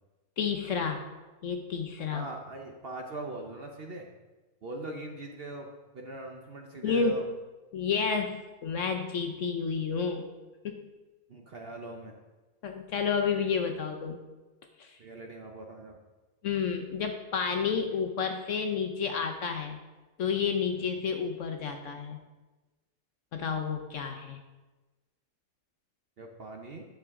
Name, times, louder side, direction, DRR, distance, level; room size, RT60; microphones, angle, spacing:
voice 1, 0.4-1.0 1.4-2.3 6.8-7.2 7.7-10.2 10.6-10.9 12.6-14.2 14.8-15.0 16.4-19.8 20.2-22.2 23.3-24.4, left 6 dB, 60° left, 5 dB, 0.9 m, -30 dB
voice 2, 2.1-4.1 4.6-5.7 5.9-7.2 11.3-12.1 15.0-16.0 20.7-20.9 26.2-26.9, right 2 dB, 50° right, 2 dB, 0.8 m, -40 dB
10.5 x 6.9 x 3.6 m, 1.2 s
omnidirectional pair, 1.7 m